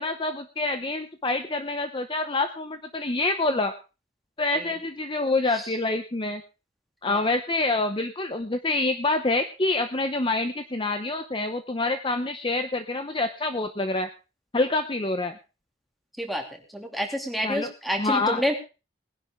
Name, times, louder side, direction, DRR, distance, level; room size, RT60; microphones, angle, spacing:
voice 1, 0.0-3.7 4.4-6.4 7.0-14.1 14.5-15.3 17.4-17.7 18.0-18.4, left 2 dB, 25° left, 8 dB, 0.8 m, -26 dB
voice 2, 16.7-18.5, equal, ahead, 3 dB, 2.7 m, -28 dB
20.5 x 10.5 x 3.7 m, 0.32 s
head